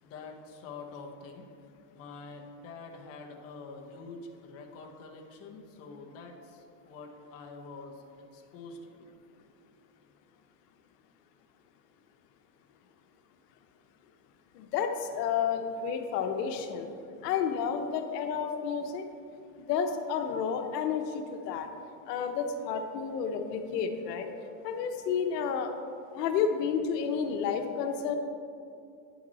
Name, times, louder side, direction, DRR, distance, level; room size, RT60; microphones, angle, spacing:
voice 1, 0.0-1.5 1.9-8.0 8.3-8.8, left 4 dB, 30° left, 1 dB, 0.8 m, -46 dB
voice 2, 14.5-16.9 17.2-19.1 19.7-21.7 22.1-24.3 24.6-25.7 26.1-28.2, left 6 dB, 90° left, 6 dB, 0.9 m, -31 dB
9.6 x 5.9 x 4.1 m, 2.5 s
supercardioid pair, 155°, 47 cm